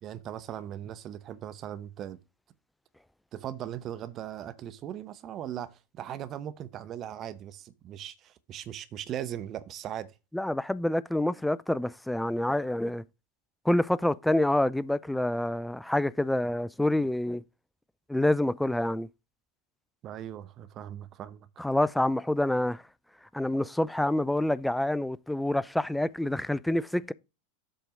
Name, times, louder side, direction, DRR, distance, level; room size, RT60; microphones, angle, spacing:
voice 1, 0.0-2.2 3.3-10.1 20.0-21.5, right 11 dB, 35° right, 0.9 m, -39 dB
voice 2, 10.3-13.0 13.7-17.4 18.1-19.1 21.6-22.8 23.3-27.1, left 1 dB, 5° left, 0.3 m, -27 dB
7.8 x 4.6 x 5.3 m
figure-of-eight pair, 85°, 0 cm